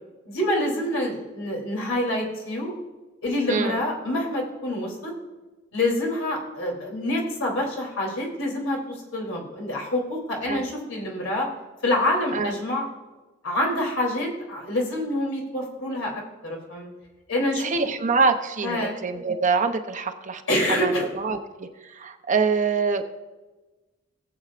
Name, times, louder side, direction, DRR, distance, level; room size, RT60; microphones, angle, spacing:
voice 1, 0.2-2.7 3.2-5.1 5.7-11.5 11.8-12.8 13.4-16.1 16.4-16.9 17.3-17.7 18.6-18.9 20.5-21.1, left 1 dB, 80° left, -1 dB, 3.1 m, -26 dB
voice 2, 3.5-3.8 10.4-10.6 12.3-12.5 17.6-20.4 20.7-23.0, right 4 dB, 40° right, 6 dB, 0.7 m, -25 dB
19.0 x 7.9 x 2.5 m, 1.2 s
head